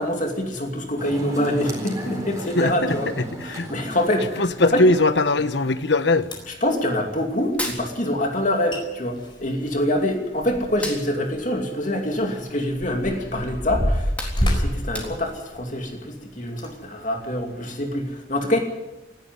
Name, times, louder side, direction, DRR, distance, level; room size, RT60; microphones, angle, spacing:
voice 1, 0.0-3.1 3.4-4.8 6.6-18.6, left 1 dB, 40° left, 2.6 m, -25 dB
sound 1, 1.0-6.0, equal, 20° right, 4.2 m, -36 dB
voice 2, 2.6-3.7 4.4-6.3, left 2 dB, 65° left, 1.1 m, -21 dB
sound 2, 5.8-5.9 6.2-6.7 8.4-8.5 8.7-8.8 9.2-11.0 11.3-11.4 12.1-15.9 16.5-16.7 17.3-17.4, equal, 25° left, 4.5 m, -27 dB
Hands, 7.5-8.7 8.9-10.2 10.6-13.0 13.4-13.5 13.9-15.5, left 1 dB, 10° left, 3.8 m, -35 dB
18.5 x 14.5 x 9.7 m
head